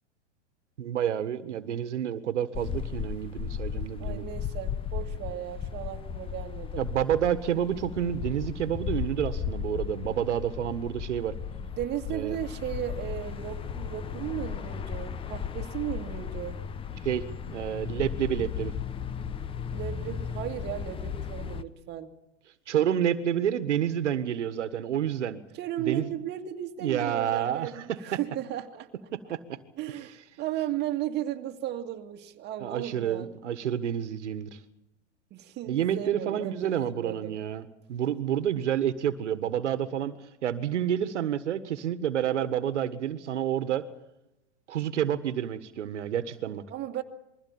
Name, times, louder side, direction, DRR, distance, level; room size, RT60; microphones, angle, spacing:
voice 1, 0.8-4.3 6.8-11.4 12.1-12.4 17.0-18.7 22.7-25.4 25.8-26.1 26.8-28.2 29.1-29.6 32.6-34.6 35.7-40.2 40.4-43.9 44.7-46.6, right 10 dB, 80° right, 12 dB, 1.6 m, -29 dB
sound 1, 2.5-21.6, left 7 dB, 15° left, 0.8 m, -35 dB
voice 2, 4.0-6.9 11.6-16.6 19.7-22.1 25.5-28.9 29.8-33.3 35.3-37.4 46.7-47.0, right 12 dB, 30° right, 4 dB, 1.9 m, -35 dB
22.0 x 16.0 x 8.7 m, 0.90 s
hypercardioid pair, 125°, 35 cm